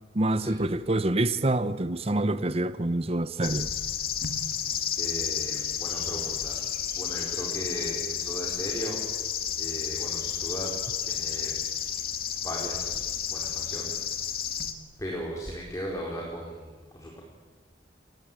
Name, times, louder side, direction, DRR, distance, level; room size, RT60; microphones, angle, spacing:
voice 1, 0.1-3.7, right 2 dB, 35° right, 0.9 m, -26 dB
sound 1, 3.4-14.7, left 9 dB, 55° left, 2.0 m, -31 dB
voice 2, 5.0-6.6 7.0-9.1 9.6-11.5 12.4-14.5 15.0-17.2, equal, 20° left, 4.3 m, -37 dB
29.5 x 17.5 x 9.1 m
head